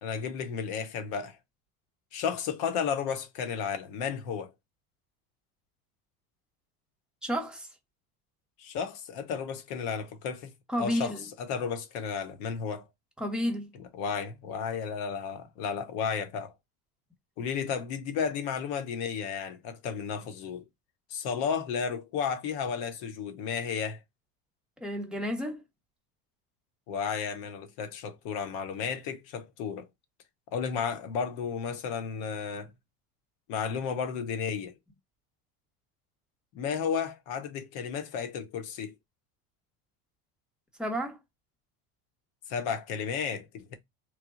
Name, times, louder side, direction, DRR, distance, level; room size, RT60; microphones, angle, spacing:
voice 1, 0.0-1.4 2.1-4.5 8.6-10.5 10.8-12.9 14.0-16.5 17.4-20.6 21.1-24.0 26.9-29.9 30.5-32.7 33.5-34.7 36.5-38.9 42.5-43.7, left 6 dB, 65° left, 1.1 m, -33 dB
voice 2, 7.2-7.7 10.7-11.2 13.2-13.7 24.8-25.6 40.8-41.2, equal, ahead, 1.1 m, -31 dB
3.2 x 2.3 x 3.8 m
supercardioid pair, 100°, 41 cm